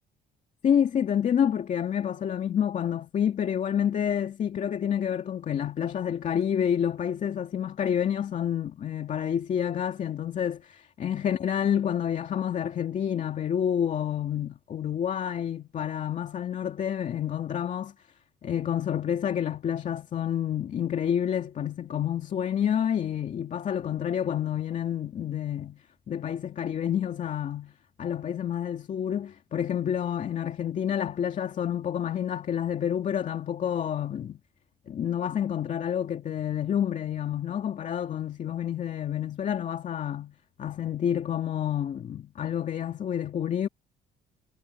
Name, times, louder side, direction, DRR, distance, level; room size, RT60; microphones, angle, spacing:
voice 1, 0.6-17.9 18.4-27.7 28.0-34.4 34.9-43.7, left 9 dB, 45° left, 2.4 m, -29 dB
cardioid pair, 110°, 17 cm